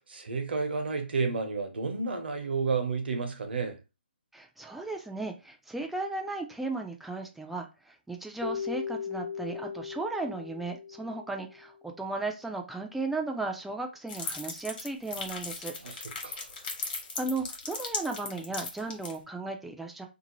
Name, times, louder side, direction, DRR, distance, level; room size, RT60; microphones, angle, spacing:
voice 1, 0.0-3.8 15.8-16.5, right 4 dB, 65° right, 0.8 m, -31 dB
voice 2, 4.3-15.7 17.2-20.1, right 3 dB, 5° right, 0.3 m, -35 dB
Keyboard (musical), 8.4-11.7, left 6 dB, 90° left, 0.4 m, -37 dB
sound 1, 14.1-19.2, left 4 dB, 50° left, 1.1 m, -37 dB
2.6 x 2.1 x 3.0 m
figure-of-eight pair, 145°, 6 cm